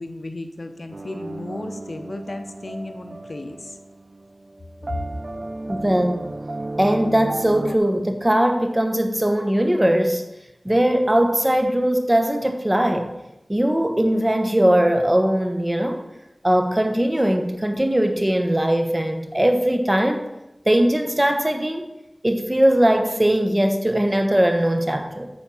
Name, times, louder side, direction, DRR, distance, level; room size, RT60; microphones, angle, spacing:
voice 1, 0.0-3.8 4.9-5.0, left 2 dB, 65° left, 7 dB, 0.8 m, -34 dB
sound 1, 0.9-7.8, right 2 dB, 45° right, 0.6 m, -34 dB
voice 2, 5.7-6.3 6.8-10.2 10.6-13.1 13.5-16.0 16.4-20.3 20.7-21.8 22.2-25.3, right 1 dB, 20° right, 6 dB, 1.1 m, -20 dB
9.4 x 4.5 x 7.1 m, 0.94 s
wide cardioid pair, 50°, 0 cm